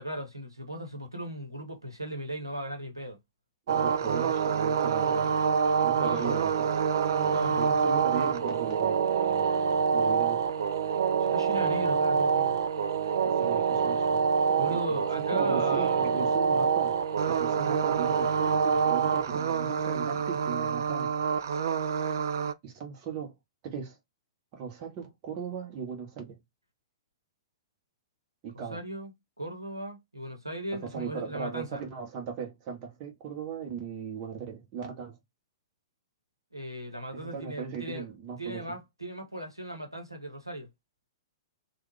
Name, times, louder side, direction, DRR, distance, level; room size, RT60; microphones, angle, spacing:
voice 1, 0.0-3.2 6.0-6.4 7.1-8.0 11.2-12.6 14.6-16.1 28.7-29.1 29.4-31.8 36.5-38.1 38.4-40.7, right 1 dB, 90° right, 1.0 m, -37 dB
voice 2, 3.7-5.4 5.8-6.7 7.6-9.5 9.9-10.4 13.2-14.2 14.5-14.8 15.2-17.0 17.3-21.2 22.6-23.3 23.6-24.0 24.5-26.4 28.4-28.8 30.9-35.2 37.1-38.8, right 7 dB, 35° right, 1.0 m, -38 dB
sound 1, 3.7-22.5, right 6 dB, 55° right, 0.4 m, -26 dB
3.3 x 2.3 x 3.3 m
figure-of-eight pair, 110°, 2 cm